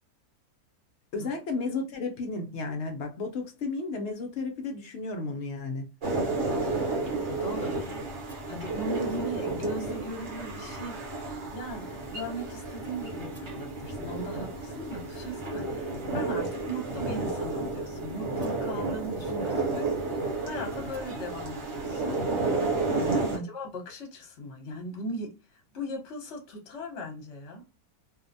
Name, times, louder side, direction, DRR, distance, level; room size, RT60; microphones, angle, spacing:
voice 1, 1.1-5.9 19.3-19.5 23.2-23.5, left 3 dB, 70° left, 0.6 m, -33 dB
sound 1, 6.0-23.4, right 3 dB, 55° right, 1.1 m, -32 dB
voice 2, 7.2-11.1 11.5-22.2 22.9-27.6, equal, 55° left, 1.0 m, -38 dB
2.6 x 2.0 x 2.5 m
omnidirectional pair, 1.6 m